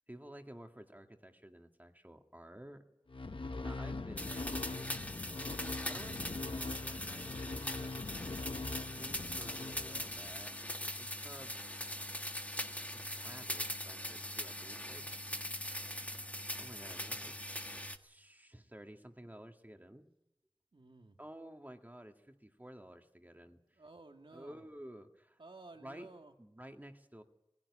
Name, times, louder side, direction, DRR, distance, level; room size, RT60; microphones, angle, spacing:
voice 1, 0.1-2.8 3.6-8.2 9.0-11.6 12.9-15.1 16.6-17.3 18.0-20.1 21.2-23.8 24.3-25.4 25.8-26.1 26.4-27.2, right 1 dB, 20° right, 5 dB, 2.0 m, -53 dB
sound 1, 3.1-10.5, left 3 dB, 75° left, 1.0 m, -42 dB
sound 2, 4.2-18.0, left 1 dB, 15° left, 1.4 m, -41 dB
voice 2, 20.7-21.2 23.7-24.6 25.4-26.3, right 3 dB, 75° right, 4 dB, 2.1 m, -54 dB
19.5 x 16.0 x 9.8 m, 0.93 s
wide cardioid pair, 45°, 9 cm